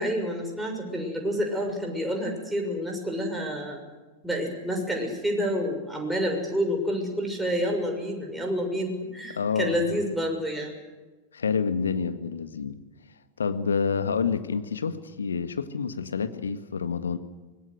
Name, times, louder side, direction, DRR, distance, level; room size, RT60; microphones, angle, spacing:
voice 1, 0.0-3.8 4.2-10.8, equal, 5° right, 1 dB, 6.6 m, -28 dB
voice 2, 9.4-10.1 11.3-12.8 13.4-17.2, left 6 dB, 70° left, 10 dB, 1.8 m, -28 dB
25.0 x 20.5 x 8.1 m, 1.2 s
figure-of-eight pair, 90°, 0 cm